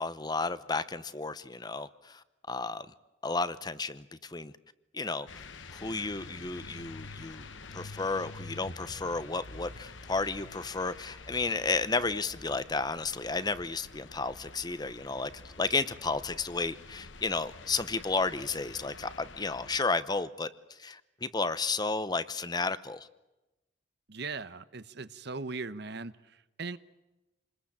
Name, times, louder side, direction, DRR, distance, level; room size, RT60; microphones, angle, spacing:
voice 1, 0.0-2.9 3.2-4.5 4.9-5.4 5.7-7.4 7.7-15.3 15.6-20.5 20.8-23.1, left 3 dB, 20° left, 0.8 m, -32 dB
sound 1, 5.3-19.8, left 3 dB, 80° left, 1.4 m, -47 dB
voice 2, 24.1-26.8, right 4 dB, 60° right, 1.0 m, -39 dB
28.0 x 20.5 x 8.8 m
head